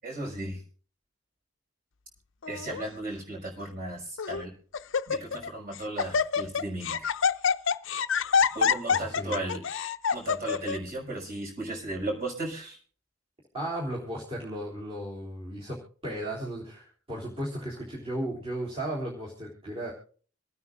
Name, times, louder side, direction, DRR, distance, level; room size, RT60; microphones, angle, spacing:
voice 1, 0.0-0.6 2.5-4.5 5.1-7.1 8.5-9.6 10.1-12.8, right 2 dB, 45° right, 0 dB, 6.0 m, -35 dB
Laughter, 2.4-2.8 3.6-3.7 4.2-4.5 4.7-5.5 5.7-10.8, left 6 dB, 60° left, 0.6 m, -26 dB
voice 2, 8.9-9.5 13.5-15.8 16.0-19.9, right 1 dB, 25° right, -5 dB, 3.6 m, -35 dB
27.0 x 9.5 x 2.5 m, 0.41 s
head